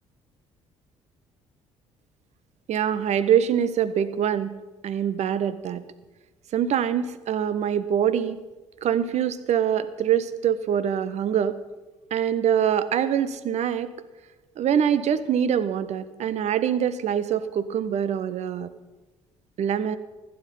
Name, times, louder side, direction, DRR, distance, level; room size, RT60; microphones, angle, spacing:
voice 1, 2.7-4.5 4.8-5.8 6.5-8.4 8.8-11.6 12.1-13.9 14.6-18.7 19.6-20.0, right 9 dB, 50° right, 14 dB, 0.8 m, -24 dB
16.0 x 10.0 x 5.4 m, 1.2 s
figure-of-eight pair, 50°, 15 cm